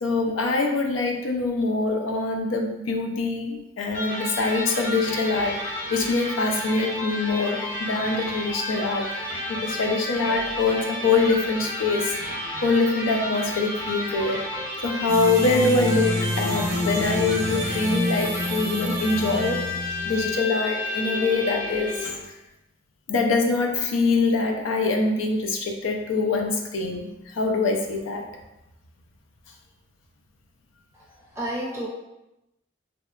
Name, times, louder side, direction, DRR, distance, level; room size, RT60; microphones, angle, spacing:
voice 1, 0.0-9.1 9.6-12.2 12.6-14.5 14.8-19.6 20.1-22.1 23.1-28.3, left 3 dB, 90° left, 3 dB, 0.4 m, -24 dB
Electric guitar, 3.9-22.3, left 1 dB, 40° left, 0.9 m, -32 dB
sound 1, 15.1-20.3, equal, 90° right, 0.5 m, -28 dB
voice 2, 30.9-31.9, right 1 dB, 15° right, -6 dB, 0.6 m, -32 dB
2.7 x 2.1 x 2.3 m, 0.92 s
head